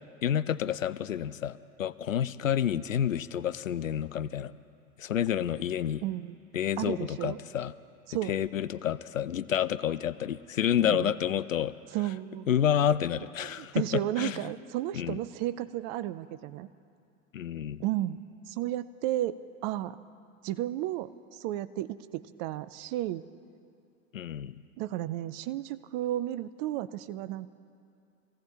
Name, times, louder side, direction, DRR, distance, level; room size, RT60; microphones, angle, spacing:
voice 1, 0.2-4.5 5.0-6.0 6.5-7.7 8.3-11.7 12.5-14.5 14.9-15.2 17.3-17.8 24.1-24.6, left 9 dB, 80° left, 16 dB, 0.5 m, -29 dB
voice 2, 6.0-6.4 6.8-7.4 8.1-8.3 10.8-11.1 11.9-12.5 13.4-16.7 17.8-18.2 18.5-20.0 20.4-23.2 24.8-27.5, right 14 dB, 35° right, 14 dB, 0.5 m, -33 dB
25.5 x 15.5 x 2.9 m, 2.5 s
figure-of-eight pair, 80°, 39 cm